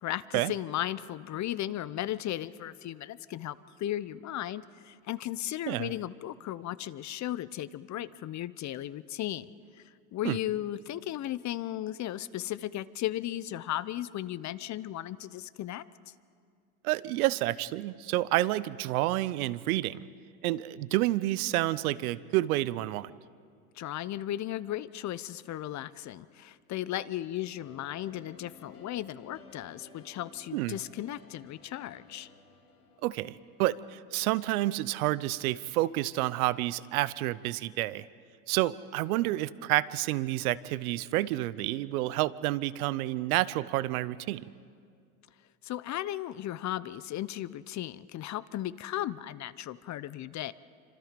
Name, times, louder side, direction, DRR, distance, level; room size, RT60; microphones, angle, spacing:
voice 1, 0.0-9.5 10.1-15.9 23.8-32.3 45.6-50.5, left 13 dB, 40° left, 17 dB, 0.7 m, -36 dB
voice 2, 16.8-20.1 20.4-23.1 30.5-30.8 33.0-38.1 38.5-44.5, right 17 dB, 80° right, 18 dB, 0.8 m, -29 dB
sound 1, 27.6-33.8, left 4 dB, 90° left, 2.7 m, -55 dB
27.0 x 25.5 x 5.2 m, 2.2 s
hypercardioid pair, 85°, 43 cm